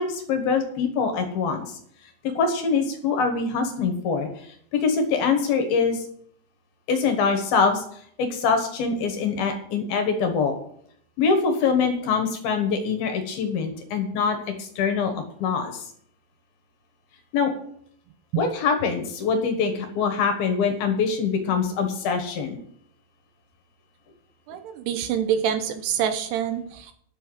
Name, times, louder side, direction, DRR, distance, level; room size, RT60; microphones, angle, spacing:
voice 1, 0.0-1.7 2.3-4.3 4.7-6.0 6.9-7.8 8.2-10.6 11.2-15.1 15.4-15.9 17.3-17.5 18.4-22.6, left 5 dB, 65° left, 6 dB, 3.0 m, -24 dB
voice 2, 24.5-26.9, right 9 dB, 80° right, 9 dB, 2.8 m, -26 dB
10.5 x 6.9 x 7.8 m, 0.65 s
omnidirectional pair, 5.1 m